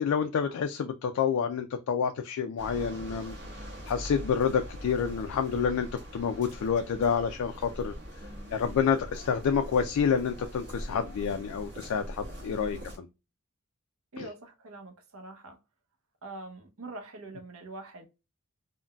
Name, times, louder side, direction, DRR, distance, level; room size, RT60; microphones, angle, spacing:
voice 1, 0.0-3.3 3.9-7.9 8.5-13.1 14.2-14.3, left 7 dB, 70° left, 0.3 m, -28 dB
sound 1, 2.6-13.0, equal, 50° right, 1.3 m, -42 dB
voice 2, 3.4-3.8 8.2-8.6 12.4-12.8 14.1-15.6 16.2-18.1, right 2 dB, 70° right, 0.7 m, -45 dB
3.8 x 2.1 x 2.2 m
head